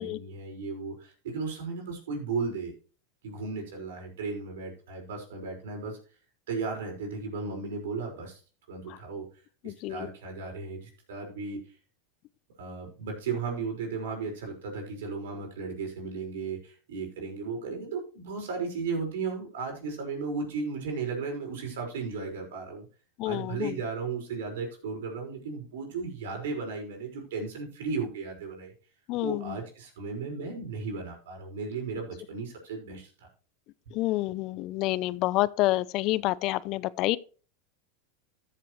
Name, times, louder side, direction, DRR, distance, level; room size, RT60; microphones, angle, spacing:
voice 1, 0.0-2.7 3.2-6.0 6.5-8.4 8.7-9.2 9.6-11.6 12.6-22.8 23.2-28.7 29.2-33.1, right 4 dB, 80° right, 5.5 m, -35 dB
voice 2, 9.6-10.1 23.2-23.8 29.1-29.6 33.9-37.2, left 18 dB, 50° left, 0.6 m, -28 dB
14.5 x 7.6 x 3.2 m
hypercardioid pair, 110°, 0 cm